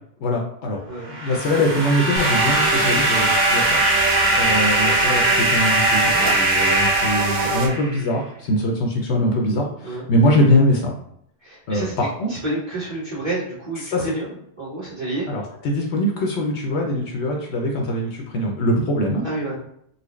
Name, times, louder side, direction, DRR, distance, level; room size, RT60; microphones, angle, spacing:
voice 1, 0.2-0.8 1.1-3.8 4.4-10.9 11.7-12.3 13.8-14.1 15.3-19.2, left 1 dB, 70° left, 0 dB, 0.9 m, -22 dB
sound 1, 1.0-8.1, right 1 dB, 40° right, 1.1 m, -21 dB
sound 2, 1.4-6.4, left 1 dB, 20° left, 0.8 m, -35 dB
sound 3, 2.2-7.7, right 4 dB, 80° right, 1.0 m, -24 dB
voice 2, 11.4-11.9 12.3-15.3 19.2-19.5, right 2 dB, 20° right, -9 dB, 1.5 m, -29 dB
4.0 x 2.2 x 3.1 m, 0.69 s
omnidirectional pair, 1.3 m